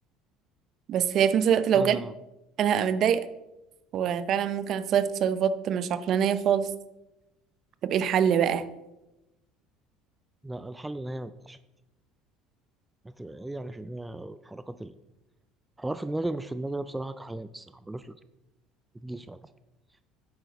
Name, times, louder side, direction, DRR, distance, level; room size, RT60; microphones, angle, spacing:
voice 1, 0.9-2.0 2.6-3.2 3.9-6.7 7.8-8.6, right 8 dB, 50° right, 13 dB, 0.7 m, -24 dB
voice 2, 1.7-2.1 10.4-11.6 13.0-14.9 15.8-18.2 19.0-19.4, right 1 dB, 10° right, 12 dB, 0.4 m, -36 dB
9.7 x 7.8 x 4.1 m, 0.95 s
supercardioid pair, 115°, 0 cm